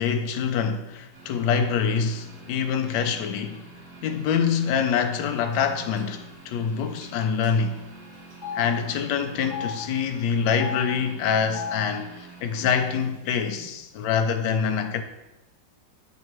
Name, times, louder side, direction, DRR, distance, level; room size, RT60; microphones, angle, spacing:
voice 1, 0.0-3.6 4.0-7.8 8.5-15.0, left 6 dB, 75° left, 6 dB, 1.2 m, -25 dB
sound 1, 1.1-13.0, right 3 dB, 50° right, 1.6 m, -47 dB
Telephone, 5.5-5.7 6.0-6.1 7.0-7.1 7.4-7.5 8.3-8.6 9.4-9.7 10.5-10.8 11.4-11.7 12.5-12.7 12.9-13.6, left 7 dB, 40° left, 3.0 m, -34 dB
8.6 x 4.5 x 3.1 m, 0.95 s
omnidirectional pair, 1.9 m